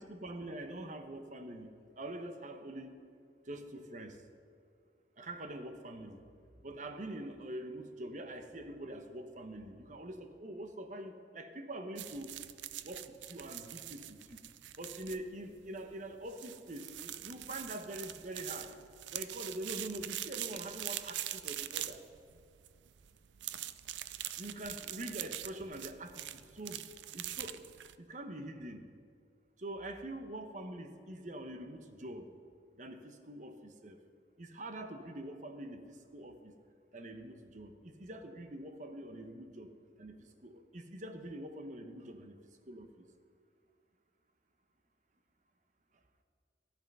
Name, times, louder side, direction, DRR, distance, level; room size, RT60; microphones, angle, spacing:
voice 1, 0.0-1.7 2.0-3.0 3.5-4.2 5.2-6.2 6.6-12.3 12.8-14.4 14.8-18.7 19.1-22.0 24.4-26.9 27.1-27.6 28.0-28.9 29.6-32.3 32.8-34.0 34.4-36.5 36.9-39.7 40.0-42.4 42.7-43.0, right 1 dB, 45° right, 7 dB, 1.0 m, -44 dB
sound 1, 12.0-28.0, right 13 dB, 90° right, 0.5 m, -43 dB
13.5 x 11.0 x 5.4 m, 2.3 s
head